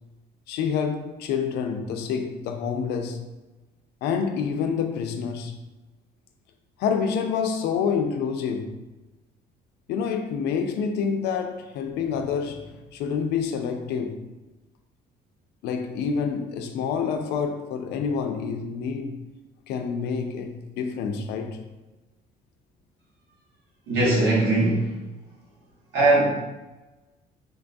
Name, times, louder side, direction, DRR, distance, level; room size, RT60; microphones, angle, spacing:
voice 1, 0.5-3.2 4.0-5.5 6.8-8.7 9.9-12.6 12.9-14.2 15.6-19.2 19.7-21.6, left 6 dB, 80° left, 5 dB, 0.4 m, -27 dB
voice 2, 23.9-24.8 25.9-26.3, right 2 dB, 85° right, -5 dB, 1.3 m, -20 dB
3.9 x 2.2 x 2.6 m, 1.1 s
cardioid pair, 110°, 17 cm